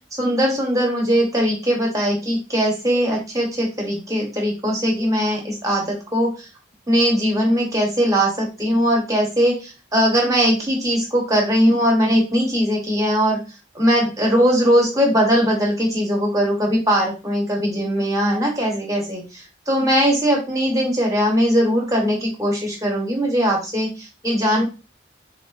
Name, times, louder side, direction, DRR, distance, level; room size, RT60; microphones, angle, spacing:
voice 1, 0.2-6.5 6.9-13.4 13.7-24.6, equal, 20° right, -1 dB, 0.9 m, -20 dB
3.7 x 2.4 x 2.4 m, 0.30 s
head